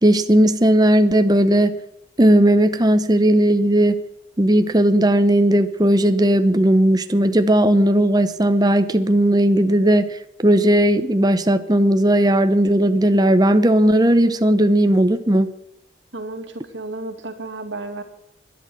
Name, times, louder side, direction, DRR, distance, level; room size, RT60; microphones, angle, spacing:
voice 1, 0.0-1.8 2.2-4.0 4.4-10.1 10.4-15.5, right 1 dB, 20° right, 9 dB, 0.8 m, -16 dB
voice 2, 16.1-18.0, right 2 dB, 85° right, 6 dB, 2.3 m, -32 dB
12.5 x 11.0 x 7.6 m, 0.78 s
head